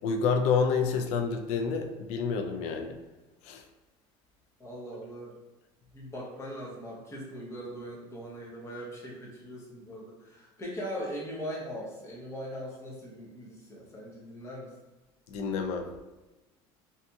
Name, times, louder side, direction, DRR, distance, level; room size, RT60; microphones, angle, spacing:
voice 1, 0.0-3.0 3.4-3.6 15.3-16.0, left 5 dB, 65° left, 5 dB, 0.4 m, -28 dB
voice 2, 4.6-5.3 5.9-14.7, equal, 20° left, -3 dB, 0.7 m, -40 dB
2.7 x 2.6 x 2.3 m, 1.1 s
cardioid pair, 140°, 12 cm